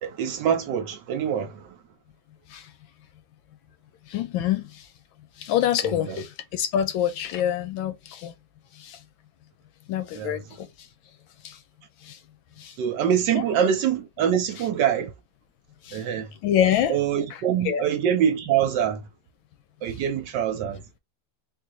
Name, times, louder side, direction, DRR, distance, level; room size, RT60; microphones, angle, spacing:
voice 1, 0.0-1.6 5.8-6.2 10.1-10.4 12.8-15.1 15.9-16.3 16.9-19.0 19.8-20.8, right 9 dB, 70° right, 1.2 m, -24 dB
voice 2, 4.1-4.7 5.4-8.3 8.8-9.0 9.9-10.7 11.4-11.5 12.1-12.2 12.6-12.7 13.6-13.7 15.9-16.0 16.4-16.9 17.6-17.8, left 10 dB, 80° left, 1.4 m, -25 dB
3.8 x 2.6 x 2.9 m
omnidirectional pair, 2.2 m